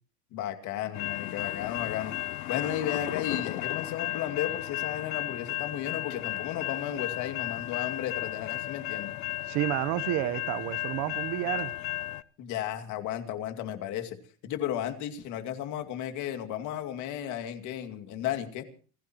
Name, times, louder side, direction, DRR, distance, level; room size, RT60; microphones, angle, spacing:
voice 1, 0.3-2.2 2.5-9.2 12.4-14.2 14.4-18.6, left 11 dB, 45° left, 2.5 m, -34 dB
sound 1, 0.9-12.2, left 16 dB, 85° left, 0.9 m, -34 dB
voice 2, 9.4-11.7, right 15 dB, 45° right, 1.1 m, -30 dB
28.5 x 16.0 x 3.0 m
supercardioid pair, 150°, 41 cm